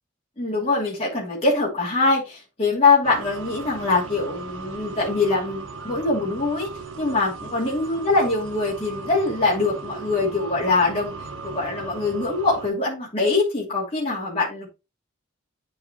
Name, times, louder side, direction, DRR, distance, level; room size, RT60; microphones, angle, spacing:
voice 1, 0.4-6.7 7.0-11.1 11.4-14.7, left 3 dB, 30° left, 2.7 m, -23 dB
sound 1, 3.0-12.7, right 4 dB, 85° right, 1.4 m, -37 dB
9.7 x 4.9 x 3.0 m
head